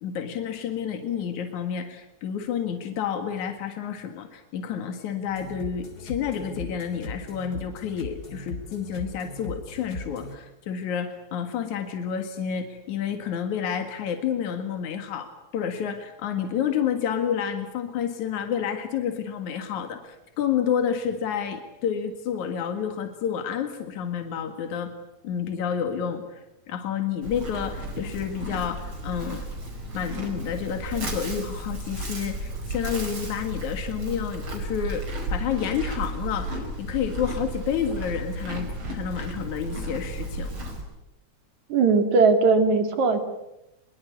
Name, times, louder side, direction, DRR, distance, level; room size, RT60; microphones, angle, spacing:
voice 1, 0.0-24.9 25.2-29.4 29.9-40.5, left 8 dB, 75° left, 6 dB, 3.3 m, -30 dB
sound 1, 5.3-10.4, left 2 dB, 30° left, 3.2 m, -39 dB
Livestock farm animals working animals, 27.2-40.8, right 1 dB, 45° right, 5.7 m, -33 dB
voice 2, 41.7-43.2, right 4 dB, 75° right, 7 dB, 3.9 m, -19 dB
24.0 x 22.5 x 9.5 m, 0.91 s
omnidirectional pair, 3.4 m